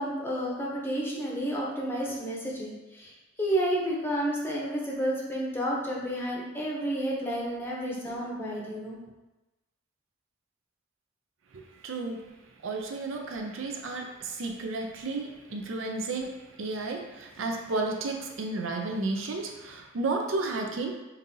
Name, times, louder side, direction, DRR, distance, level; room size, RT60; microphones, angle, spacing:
voice 1, 0.0-3.1 3.4-9.0, right 1 dB, 10° left, -4 dB, 0.7 m, -31 dB
voice 2, 11.8-12.2 12.6-20.9, right 3 dB, 70° right, 2 dB, 0.5 m, -32 dB
5.2 x 2.6 x 2.6 m, 1.1 s
head